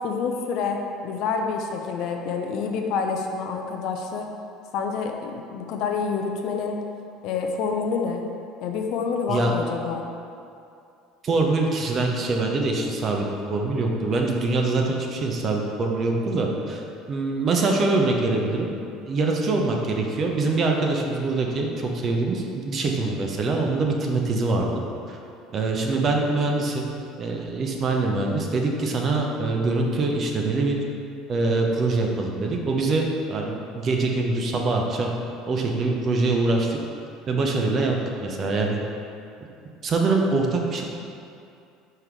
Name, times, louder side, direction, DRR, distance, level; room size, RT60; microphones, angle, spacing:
voice 1, 0.0-4.3 4.7-6.7 7.2-8.2 8.6-10.0, left 5 dB, 55° left, 3 dB, 0.5 m, -27 dB
voice 2, 11.2-16.8 17.1-18.7 19.1-24.8 25.1-25.2 25.5-26.8 27.2-30.8 31.3-35.2 35.5-36.8 37.3-38.8 39.8-40.8, right 3 dB, 40° right, 1 dB, 0.8 m, -24 dB
5.7 x 3.7 x 4.6 m, 2.5 s
figure-of-eight pair, 65°, 0 cm